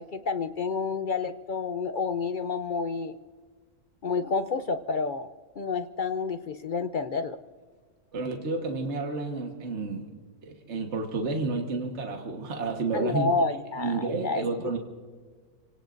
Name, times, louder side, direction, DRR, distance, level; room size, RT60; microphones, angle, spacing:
voice 1, 0.0-3.1 4.0-5.3 5.6-7.4 12.9-14.4, left 4 dB, 60° left, 9 dB, 0.5 m, -29 dB
voice 2, 8.1-10.1 10.4-13.3 13.8-14.8, right 3 dB, 50° right, 3 dB, 1.7 m, -30 dB
28.5 x 18.0 x 2.6 m, 1.5 s
omnidirectional pair, 1.5 m